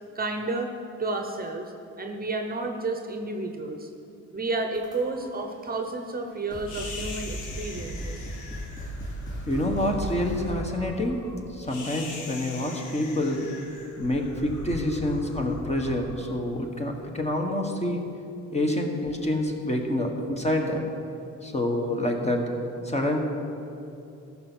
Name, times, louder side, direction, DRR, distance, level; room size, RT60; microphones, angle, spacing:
voice 1, 0.1-0.7 1.0-1.6 2.0-3.9 4.3-8.3, right 2 dB, 30° right, 4 dB, 0.9 m, -31 dB
sound 1, 4.7-5.4 6.1-6.2 6.5-10.7, right 1 dB, 40° left, 2.8 m, -37 dB
sound 2, 6.6-17.0, left 2 dB, 85° left, 1.5 m, -40 dB
voice 2, 9.5-11.2 11.5-13.7 14.0-18.0 18.5-20.8 21.4-22.5 22.8-23.2, left 1 dB, 20° left, 2 dB, 1.5 m, -27 dB
14.0 x 5.8 x 6.3 m, 2.8 s
cardioid pair, 90°, 30 cm